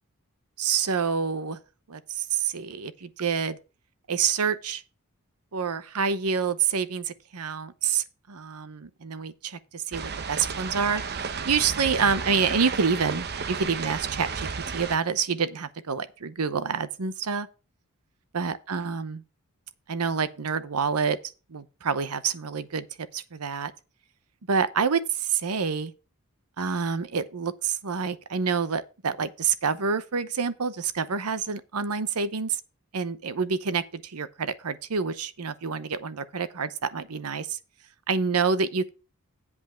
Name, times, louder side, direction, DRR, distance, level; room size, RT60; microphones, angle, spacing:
voice 1, 0.6-1.6 1.9-3.6 4.1-4.8 5.5-17.5 18.3-19.2 19.9-21.2 21.5-22.9 23.1-23.7 24.5-25.9 26.6-32.6 32.9-37.6 38.1-38.9, right 5 dB, 85° right, 0.8 m, -27 dB
sound 1, 9.9-15.0, right 5 dB, 50° right, 0.8 m, -33 dB
8.1 x 5.3 x 6.9 m
head